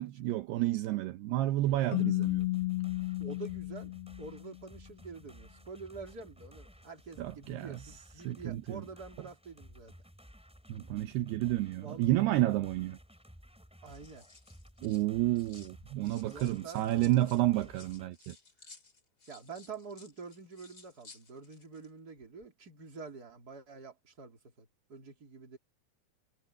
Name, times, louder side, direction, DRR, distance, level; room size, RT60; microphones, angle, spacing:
voice 1, 0.0-2.4 7.2-7.8 8.3-8.8 10.7-13.0 14.8-18.4, right 15 dB, 75° right, 2.8 m, -30 dB
sound 1, 1.6-18.1, equal, ahead, 3.7 m, -55 dB
Keyboard (musical), 1.9-4.7, left 20 dB, 75° left, 2.8 m, -33 dB
voice 2, 3.2-3.9 4.2-9.9 11.4-12.1 13.8-14.3 16.3-17.5 19.3-25.6, right 4 dB, 25° right, 3.8 m, -47 dB
sound 2, 12.6-12.8 13.6-15.7 16.0-21.9 22.2-22.4, left 4 dB, 25° left, 2.9 m, -57 dB
omnidirectional pair, 4.8 m